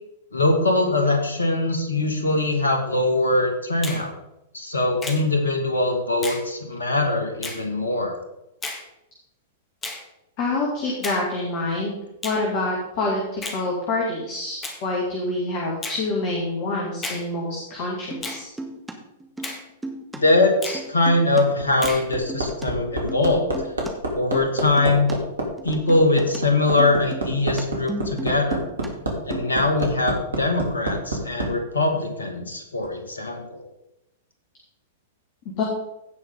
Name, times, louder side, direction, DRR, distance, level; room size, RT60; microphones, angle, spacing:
voice 1, 0.3-4.1 4.5-8.1 20.1-23.5 24.1-25.1 25.6-28.6 29.2-33.6, left 2 dB, 80° left, 4 dB, 2.0 m, -22 dB
Finger snapping, 3.8-4.0 5.0-5.2 6.2-6.4 7.4-7.6 8.6-8.8 9.8-10.0 11.0-11.2 12.2-12.4 13.4-13.6 14.6-14.8 15.8-16.0 17.0-17.3 18.2-18.4 19.4-19.6 20.6-20.8 21.8-22.1, left 2 dB, 20° left, 1.9 m, -33 dB
voice 2, 10.4-11.9 12.2-18.5 35.4-35.6, left 2 dB, 45° left, -2 dB, 2.7 m, -26 dB
sound 1, 18.1-18.9 19.2-20.2 20.4-22.7 22.9-25.1 25.4-28.9 29.2-29.8, right 2 dB, 5° right, 1.6 m, -36 dB
Hammer, 21.6-31.5 32.8-32.9, right 1 dB, 75° right, 2.7 m, -27 dB
16.5 x 5.6 x 3.9 m, 0.89 s
figure-of-eight pair, 100°, 0 cm